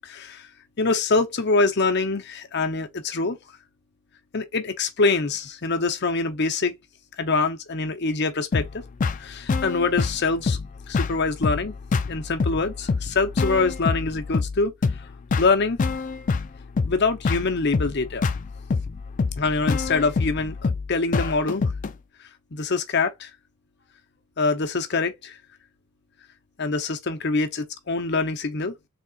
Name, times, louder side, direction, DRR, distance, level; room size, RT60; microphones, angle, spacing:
voice 1, 0.0-0.5 0.8-3.4 4.3-6.7 7.2-8.6 9.2-10.6 10.9-11.7 12.1-14.7 15.4-15.8 16.9-18.2 19.4-21.6 22.5-23.3 24.4-25.4 26.6-28.7, left 3 dB, 55° left, 0.8 m, -24 dB
sound 1, 8.5-21.9, left 4 dB, 40° left, 0.4 m, -26 dB
4.2 x 3.6 x 2.4 m
head